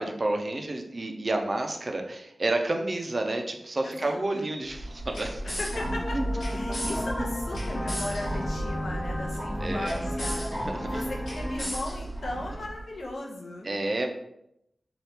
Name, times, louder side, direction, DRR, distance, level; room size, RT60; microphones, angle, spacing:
voice 1, 0.0-5.5 6.1-6.3 6.7-6.8 7.2-7.3 9.6-10.0 10.7-11.0 13.6-14.1, right 2 dB, 45° right, 3 dB, 0.4 m, -30 dB
voice 2, 3.8-4.4 5.4-10.4 10.8-13.7, left 2 dB, 75° left, -1 dB, 0.6 m, -37 dB
sound 1, 4.7-12.8, equal, 90° left, 1.2 m, -34 dB
sound 2, 5.7-11.7, left 1 dB, 25° left, 0.4 m, -34 dB
sound 3, 6.9-12.7, equal, 5° right, 0.8 m, -43 dB
2.8 x 2.3 x 3.4 m, 0.79 s
wide cardioid pair, 75°, 0 cm